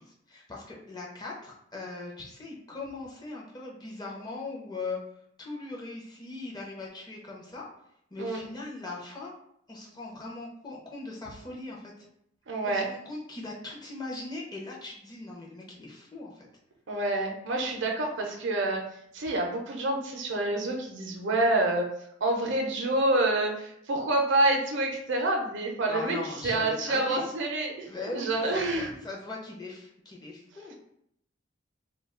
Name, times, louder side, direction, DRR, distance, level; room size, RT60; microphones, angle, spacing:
voice 1, 0.0-5.0 5.4-7.7 8.1-9.3 9.7-11.9 12.6-16.5 25.9-27.3 27.9-30.7, left 3 dB, 20° left, -3 dB, 0.5 m, -39 dB
voice 2, 12.5-12.9 16.9-18.8 19.1-21.9 22.2-26.2 26.4-27.9 28.1-28.9, right 2 dB, 65° right, 2 dB, 0.5 m, -27 dB
2.3 x 2.2 x 3.6 m, 0.74 s
head